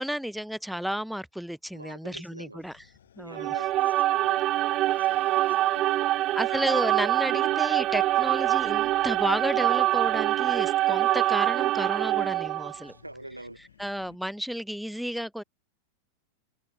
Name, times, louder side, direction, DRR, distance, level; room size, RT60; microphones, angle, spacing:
voice 1, 0.0-2.8 3.2-3.6 6.3-12.9 13.8-15.4, equal, ahead, 2.5 m, -32 dB
voice 2, 1.7-2.7 3.2-6.2 12.8-13.6, right 2 dB, 85° right, 4.6 m, -45 dB
sound 1, 2.6-14.2, left 10 dB, 65° left, 6.5 m, -56 dB
sound 2, 3.3-12.8, right 15 dB, 35° right, 1.5 m, -25 dB
open air
figure-of-eight pair, 90°, 0 cm